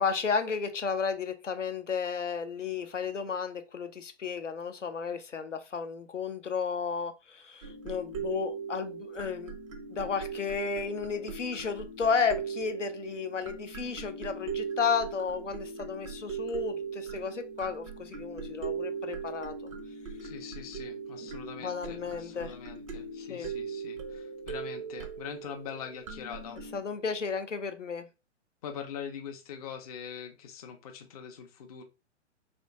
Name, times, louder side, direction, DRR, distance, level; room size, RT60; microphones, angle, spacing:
voice 1, 0.0-9.5 9.9-19.7 21.2-21.3 21.6-22.5 23.3-23.5 26.7-28.1, left 5 dB, 85° left, 0.6 m, -33 dB
sound 1, 7.6-26.8, right 5 dB, 30° right, 0.4 m, -39 dB
voice 2, 20.2-26.6 28.6-31.8, left 7 dB, 35° left, 0.5 m, -43 dB
3.2 x 2.5 x 2.8 m
figure-of-eight pair, 120°, 36 cm